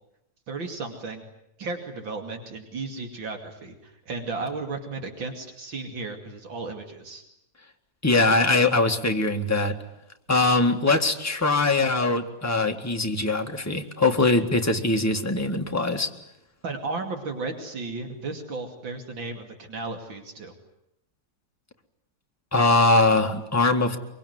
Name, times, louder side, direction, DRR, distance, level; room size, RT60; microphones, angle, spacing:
voice 1, 0.5-1.2 1.6-7.2 16.6-20.5, right 3 dB, 85° right, 4 dB, 3.4 m, -34 dB
voice 2, 8.0-9.8 10.3-16.1 22.5-24.0, left 2 dB, 10° left, 3 dB, 1.8 m, -22 dB
24.0 x 23.5 x 9.5 m, 0.81 s
omnidirectional pair, 2.0 m